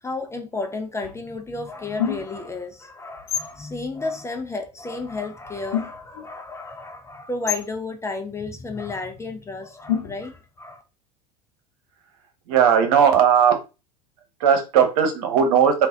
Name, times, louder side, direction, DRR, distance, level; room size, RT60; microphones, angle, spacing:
voice 1, 0.0-10.8, left 3 dB, 15° left, 0.6 m, -32 dB
sound 1, 1.0-1.2 2.0-2.5 3.2-3.6 5.2-5.3 5.5-6.3 7.5-7.8 9.9-10.4, left 9 dB, 65° left, 0.7 m, -28 dB
voice 2, 12.5-13.6 14.4-15.9, right 7 dB, 60° right, 1.1 m, -17 dB
3.9 x 2.5 x 3.8 m
figure-of-eight pair, 75°, 21 cm